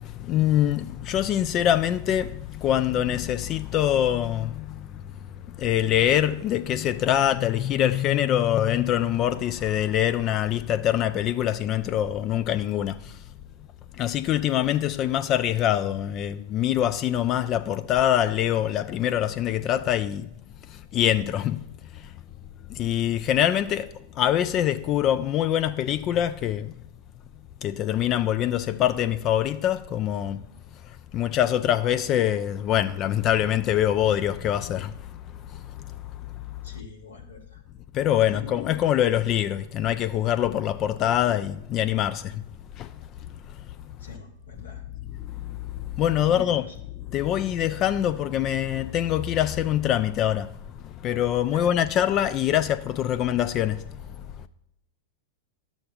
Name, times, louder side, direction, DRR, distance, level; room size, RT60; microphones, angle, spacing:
voice 1, 0.0-4.9 5.5-13.0 14.0-20.3 20.9-21.6 22.7-23.9 24.2-26.7 27.6-30.4 31.1-34.9 35.5-35.6 37.9-42.4 42.8-42.9 45.5-45.6 46.0-46.7 47.1-50.5 51.0-53.8, left 11 dB, 35° left, 0.3 m, -24 dB
voice 2, 36.6-37.6 38.3-38.6 44.0-44.8 46.2-46.7 51.5-51.7, left 2 dB, 80° left, 1.7 m, -44 dB
12.0 x 7.1 x 2.3 m
figure-of-eight pair, 95°, 0 cm